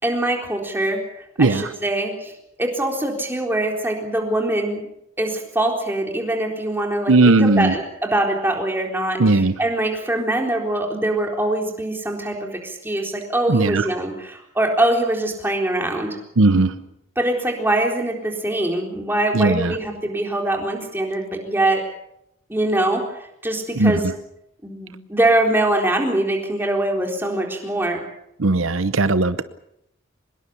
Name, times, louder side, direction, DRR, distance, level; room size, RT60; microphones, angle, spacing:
voice 1, 0.0-2.3 2.6-4.9 5.2-16.2 17.2-21.8 22.5-24.0 24.6-28.0, right 1 dB, 10° right, 1 dB, 4.0 m, -23 dB
voice 2, 1.4-1.7 7.1-7.8 9.2-9.6 13.5-13.9 16.4-16.7 19.3-19.8 23.7-24.1 28.4-29.4, right 2 dB, 80° right, 13 dB, 0.9 m, -17 dB
24.5 x 21.5 x 7.0 m, 0.80 s
head